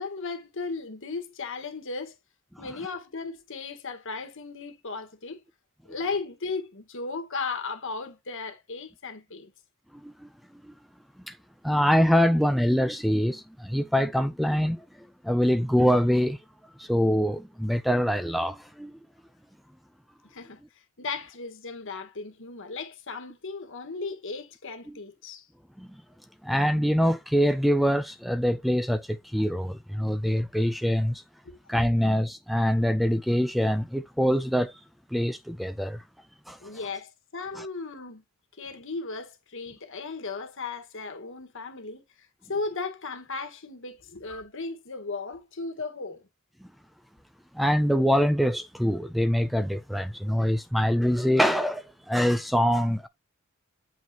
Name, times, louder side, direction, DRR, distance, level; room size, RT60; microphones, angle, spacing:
voice 1, 0.0-2.2 2.6-5.4 5.8-9.5 20.2-20.6 21.0-25.5 31.4-31.6 36.6-38.2 38.6-46.3, left 4 dB, 65° left, 1.5 m, -36 dB
voice 2, 11.6-16.4 16.8-18.9 25.8-25.9 26.4-31.2 31.7-34.7 35.1-36.0 36.5-36.6 37.6-37.7 44.3-44.4 47.5-53.1, equal, ahead, 0.4 m, -24 dB
8.1 x 4.4 x 2.8 m
head